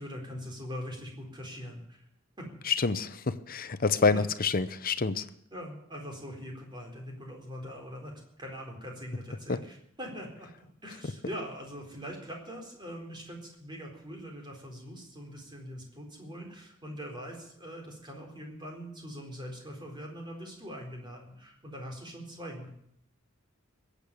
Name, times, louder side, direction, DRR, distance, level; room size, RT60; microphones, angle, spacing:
voice 1, 0.0-2.0 2.4-2.5 4.1-4.2 5.5-22.7, equal, 20° right, 1 dB, 4.2 m, -42 dB
voice 2, 2.7-5.3, left 4 dB, 45° left, 12 dB, 0.8 m, -27 dB
21.5 x 8.4 x 7.0 m, 0.71 s
head